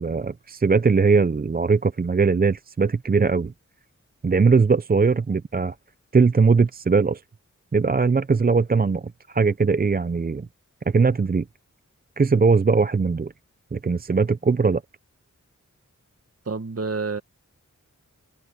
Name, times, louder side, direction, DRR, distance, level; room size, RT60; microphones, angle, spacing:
voice 1, 0.0-3.5 4.2-5.7 6.1-7.2 7.7-9.0 9.3-10.5 10.9-11.4 12.2-13.3 13.7-14.8, right 4 dB, 30° right, 0.5 m, -20 dB
voice 2, 16.4-17.2, right 4 dB, 50° right, 1.7 m, -28 dB
wide cardioid pair, 65°, 31 cm